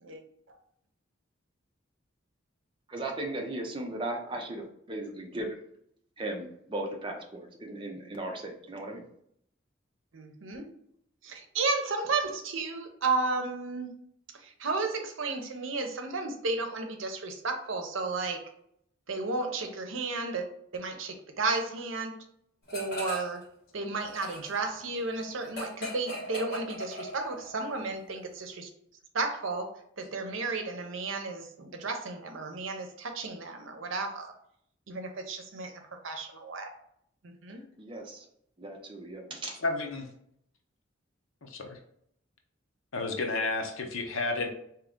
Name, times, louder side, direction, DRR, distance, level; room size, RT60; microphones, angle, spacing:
voice 1, 2.9-5.5 6.2-9.1 37.8-38.3 38.6-39.6, right 2 dB, 25° right, 1 dB, 0.6 m, -37 dB
voice 2, 10.1-10.7 11.2-13.9 14.6-18.4 19.1-20.5 20.7-22.1 22.7-23.4 23.7-28.7 29.1-34.3 34.9-35.7 36.0-36.7 37.2-37.6, right 3 dB, 75° right, 5 dB, 0.7 m, -33 dB
sound 1, 22.7-23.4 23.7-27.5, left 1 dB, 50° left, 1.5 m, -39 dB
voice 3, 39.6-40.1 41.4-41.8 42.9-44.5, left 3 dB, 85° left, 3 dB, 0.8 m, -31 dB
3.7 x 2.9 x 3.6 m, 0.71 s
head